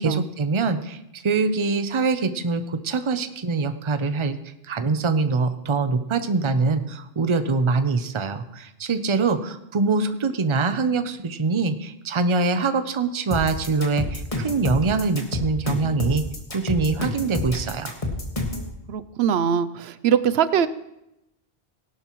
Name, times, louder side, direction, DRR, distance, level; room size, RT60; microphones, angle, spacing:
voice 1, 0.0-4.4 4.6-16.2 16.5-18.0, right 4 dB, 35° right, 10 dB, 0.7 m, -24 dB
sound 1, 13.3-18.7, left 2 dB, 35° left, 1.8 m, -28 dB
voice 2, 18.9-20.7, right 8 dB, 85° right, 14 dB, 0.9 m, -22 dB
18.5 x 11.5 x 3.1 m, 0.86 s
omnidirectional pair, 1.0 m